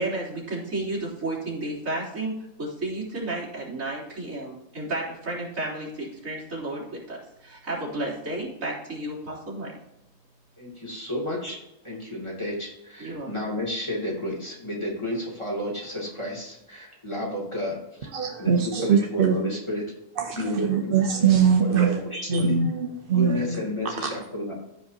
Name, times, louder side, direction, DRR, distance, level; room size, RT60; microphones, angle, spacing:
voice 1, 0.0-2.3 2.6-9.7 13.0-13.3, right 2 dB, 75° right, -7 dB, 4.0 m, -32 dB
voice 2, 10.6-11.6 11.8-18.1 18.4-19.9 20.3-21.0 21.6-22.6 23.1-24.5, left 1 dB, 20° left, -4 dB, 2.6 m, -31 dB
voice 3, 18.1-19.3 20.2-20.4 20.7-21.9 22.3-23.6 24.0-24.1, right 6 dB, 50° right, 3 dB, 0.8 m, -22 dB
14.5 x 5.2 x 2.8 m, 0.89 s
omnidirectional pair, 1.4 m